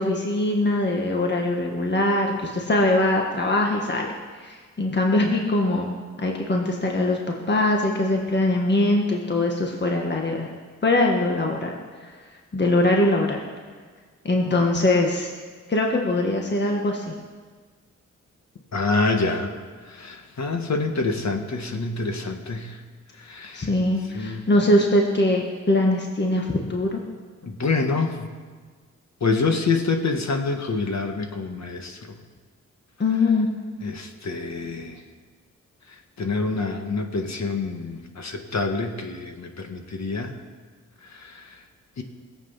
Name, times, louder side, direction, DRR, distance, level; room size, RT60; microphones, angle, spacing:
voice 1, 0.0-4.1 4.4-7.2 7.5-10.5 10.8-11.7 12.5-13.4 14.2-15.3 15.7-17.1 23.5-27.0 33.0-33.5, left 2 dB, 35° left, 0 dB, 1.6 m, -22 dB
voice 2, 18.7-19.5 20.0-22.7 23.3-23.7 24.1-24.4 27.4-28.3 29.2-32.0 33.8-35.0 36.2-40.3 41.2-41.4 42.0-42.1, left 3 dB, 65° left, 4 dB, 1.7 m, -26 dB
20.0 x 8.2 x 5.7 m, 1.5 s
wide cardioid pair, 90°, 30 cm